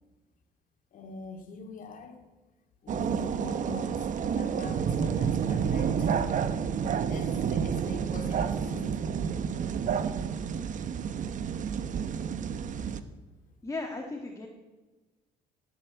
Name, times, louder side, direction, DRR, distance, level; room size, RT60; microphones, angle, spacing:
voice 1, 0.9-2.3 2.8-6.2 7.0-9.1, left 3 dB, 50° left, 6 dB, 2.7 m, -43 dB
sound 1, 2.9-13.0, right 7 dB, 50° right, 1.1 m, -30 dB
voice 2, 13.6-14.5, left 3 dB, 20° left, 1 dB, 2.2 m, -36 dB
18.0 x 8.4 x 8.3 m, 1.2 s
cardioid pair, 110°, 17 cm